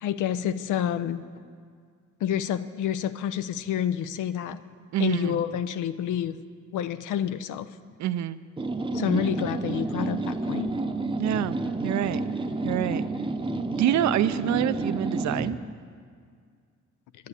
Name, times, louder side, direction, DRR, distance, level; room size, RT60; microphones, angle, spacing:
voice 1, 0.0-1.2 2.2-4.6 5.0-6.4 6.7-7.7 8.9-10.7, left 9 dB, 80° left, 13 dB, 0.6 m, -28 dB
voice 2, 4.9-5.4 8.0-8.4 9.1-9.4 11.2-11.6 11.8-12.2 12.6-13.0 13.8-15.6, right 11 dB, 70° right, 13 dB, 0.5 m, -26 dB
sound 1, 8.6-15.6, right 2 dB, 15° right, 0.8 m, -30 dB
10.5 x 9.4 x 8.3 m, 2.1 s
cardioid pair, 90°, 30 cm